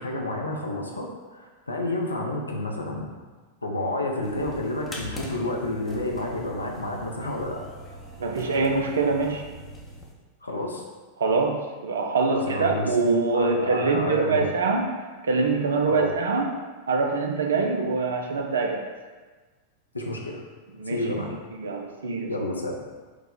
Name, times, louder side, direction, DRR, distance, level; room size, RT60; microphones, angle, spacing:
voice 1, 0.0-3.1 3.6-7.6 10.4-10.8 12.3-14.4 15.9-16.1 19.9-20.4 20.9-21.3 22.3-22.7, left 1 dB, 80° left, 0 dB, 0.6 m, -30 dB
sound 1, 4.2-10.1, left 1 dB, 10° left, 0.7 m, -42 dB
voice 2, 8.2-9.4 11.2-14.9 15.2-16.5 16.9-18.8 20.8-21.1 21.5-22.3, right 4 dB, 65° right, 2 dB, 0.4 m, -24 dB
4.7 x 2.1 x 3.7 m, 1.3 s
figure-of-eight pair, 90°, 0 cm